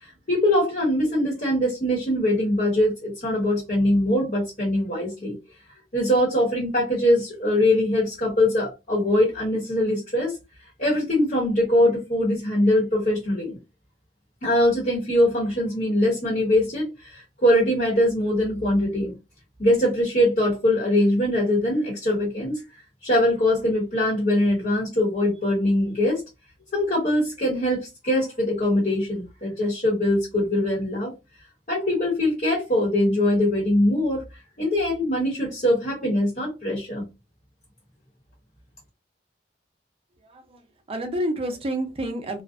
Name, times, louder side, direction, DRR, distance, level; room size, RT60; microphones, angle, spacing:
voice 1, 0.0-5.4 5.9-10.4 10.8-13.6 14.4-19.1 19.6-22.6 23.0-26.2 26.7-31.1 31.7-37.0, left 1 dB, 50° left, 1.1 m, -22 dB
voice 2, 40.2-40.6 40.9-42.4, right 1 dB, 35° right, 0.5 m, -29 dB
2.4 x 2.1 x 2.4 m
head